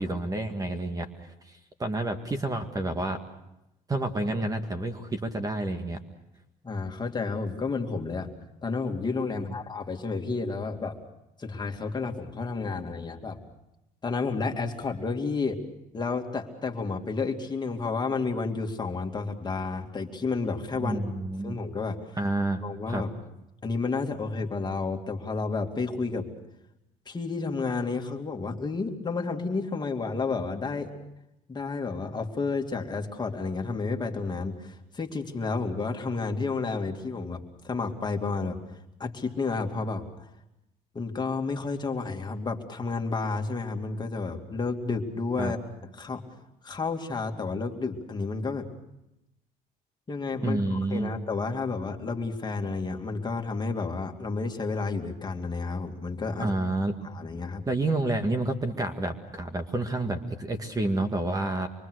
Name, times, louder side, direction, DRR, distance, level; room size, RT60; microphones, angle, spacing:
voice 1, 0.0-3.2 3.9-6.0 9.3-9.4 20.8-21.5 22.2-22.6 22.9-23.0 45.4-45.5 50.4-51.1 56.4-57.0 57.7-61.7, right 2 dB, 20° right, 6 dB, 2.0 m, -29 dB
voice 2, 6.6-8.3 8.6-11.0 11.4-13.4 14.0-15.6 15.9-21.0 21.4-22.2 22.6-23.1 23.6-26.3 27.1-30.9 31.5-38.6 39.0-40.3 40.9-45.6 45.9-46.2 46.6-48.7 50.1-56.5 57.0-57.6, left 4 dB, 25° left, 3 dB, 2.6 m, -31 dB
26.0 x 23.5 x 6.5 m, 0.87 s
cardioid pair, 110°, 17 cm